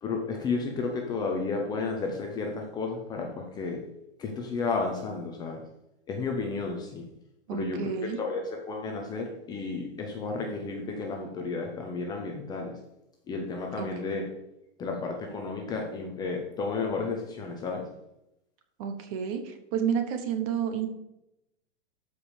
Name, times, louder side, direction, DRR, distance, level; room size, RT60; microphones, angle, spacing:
voice 1, 0.0-3.8 4.2-5.6 6.1-7.0 7.5-12.7 13.3-14.2 14.8-17.8, left 4 dB, 10° left, 1 dB, 0.8 m, -32 dB
voice 2, 7.5-8.2 13.8-13.9 18.8-20.9, right 7 dB, 30° right, 7 dB, 1.1 m, -30 dB
13.0 x 5.1 x 5.0 m, 0.86 s
supercardioid pair, 165°, 34 cm